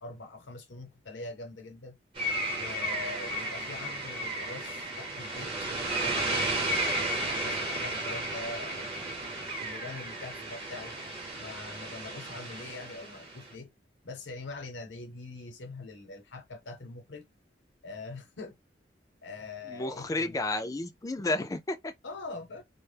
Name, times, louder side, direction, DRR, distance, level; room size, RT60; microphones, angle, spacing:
voice 1, 0.0-2.0 2.5-10.9 11.4-13.7 14.0-17.3 17.8-18.6 19.2-20.4 22.0-22.6, left 3 dB, 90° left, 0.7 m, -43 dB
sound 1, 2.2-13.5, right 1 dB, 30° right, 0.8 m, -33 dB
voice 2, 19.7-21.9, left 2 dB, 20° left, 0.3 m, -32 dB
2.1 x 2.0 x 3.2 m
head